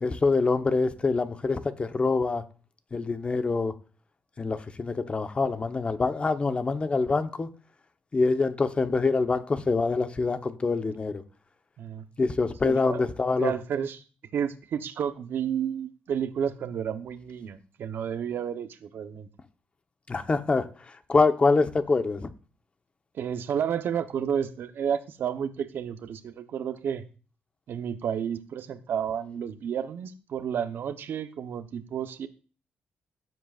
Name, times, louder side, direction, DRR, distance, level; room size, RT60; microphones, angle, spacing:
voice 1, 0.0-2.4 2.9-3.7 4.4-7.5 8.1-11.2 12.2-13.5 20.1-22.3, left 3 dB, 30° left, 1.0 m, -25 dB
voice 2, 12.6-13.0 13.4-14.0 14.3-19.3 23.1-27.0 27.7-32.3, right 8 dB, 70° right, 1.0 m, -31 dB
15.5 x 7.8 x 2.5 m
cardioid pair, 90°, 4 cm